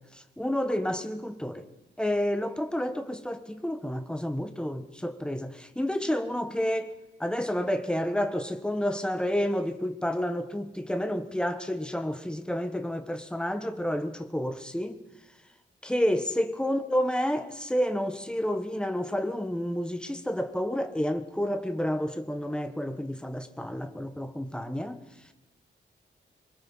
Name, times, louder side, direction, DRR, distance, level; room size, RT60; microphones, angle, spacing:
voice 1, 0.1-1.7 2.0-15.0 15.8-25.0, equal, 5° left, 1.3 m, -30 dB
24.5 x 22.5 x 5.6 m
wide cardioid pair, 150°, 20 cm